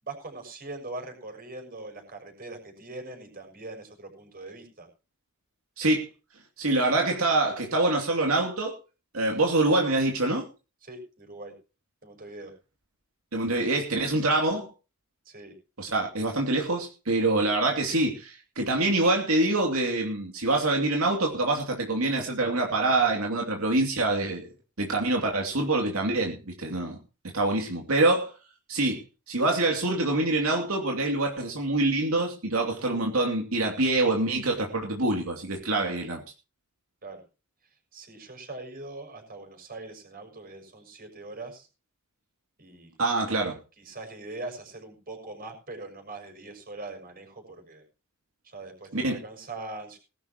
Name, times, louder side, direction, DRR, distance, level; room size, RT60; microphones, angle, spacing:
voice 1, 0.0-4.9 10.8-11.5 12.0-12.5 15.2-15.5 37.0-37.2 37.9-41.7 42.6-42.9 43.8-47.8 48.4-50.0, right 2 dB, 45° right, 6.1 m, -41 dB
voice 2, 5.8-6.1 6.6-8.8 9.1-10.5 13.3-14.7 15.8-24.5 24.8-27.0 27.3-28.3 28.7-36.2 43.0-43.6 48.9-49.2, right 2 dB, 80° right, 2.8 m, -25 dB
20.0 x 12.0 x 3.0 m
head